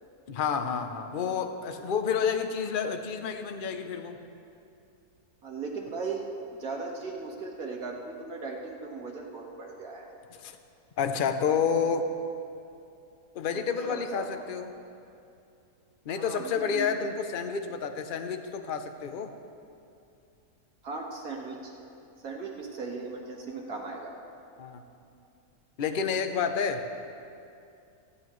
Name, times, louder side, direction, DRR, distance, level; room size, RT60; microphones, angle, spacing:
voice 1, 0.3-4.2 10.4-10.6 11.0-12.0 13.3-14.7 16.1-19.3 24.6-24.8 25.8-26.9, left 6 dB, 45° left, 7 dB, 0.7 m, -29 dB
voice 2, 5.4-6.2 6.5-10.1 13.5-14.4 16.2-16.9 20.8-21.7 22.2-24.1, right 4 dB, 70° right, -1 dB, 2.0 m, -37 dB
17.0 x 15.0 x 3.2 m, 2.6 s
omnidirectional pair, 1.6 m